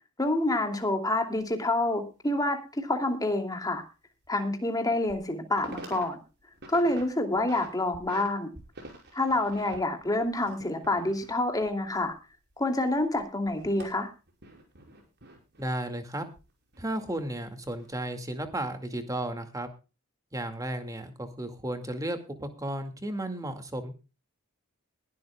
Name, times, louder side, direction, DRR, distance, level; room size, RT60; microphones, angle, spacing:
voice 1, 0.2-3.8 4.3-6.2 6.7-8.5 9.1-12.1 12.6-14.1, left 2 dB, 20° left, 5 dB, 2.7 m, -27 dB
sound 1, 0.8-0.9 1.4-1.5 3.7-3.8 4.2-4.3 4.9-5.3 5.5-6.1 6.4-7.0 7.4-8.3 8.5-12.5 12.8-15.6 16.4-17.2 17.7-18.0, right 2 dB, 55° right, 5.7 m, -47 dB
voice 2, 15.6-16.3 16.8-19.7 20.3-23.9, right 1 dB, 15° right, 7 dB, 2.2 m, -34 dB
21.0 x 12.5 x 2.3 m, 0.32 s
head